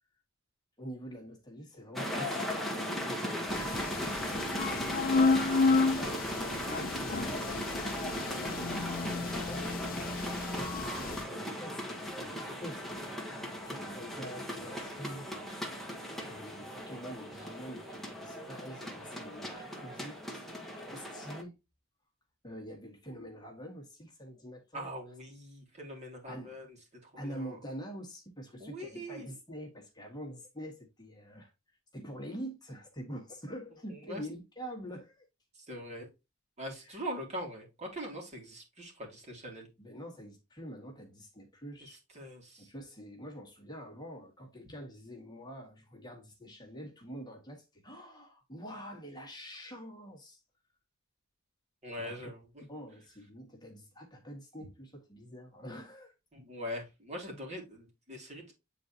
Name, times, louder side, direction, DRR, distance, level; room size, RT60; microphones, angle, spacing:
voice 1, 0.8-4.7 6.0-7.3 7.7-15.3 16.2-20.5 20.8-21.5 22.4-24.9 26.3-26.5 27.2-35.3 36.7-37.1 39.8-42.0 42.6-50.4 52.0-52.3 52.7-56.1, equal, 20° left, 1.7 m, -46 dB
sound 1, 2.0-21.4, equal, ahead, 1.4 m, -38 dB
sound 2, 3.5-11.2, left 3 dB, 45° left, 0.6 m, -31 dB
voice 2, 24.7-26.7 27.2-27.6 28.6-29.3 34.1-34.2 35.7-36.1 36.6-39.7 42.2-42.7 51.8-52.6 56.3-58.5, equal, 35° right, 2.6 m, -42 dB
9.0 x 4.0 x 2.8 m
head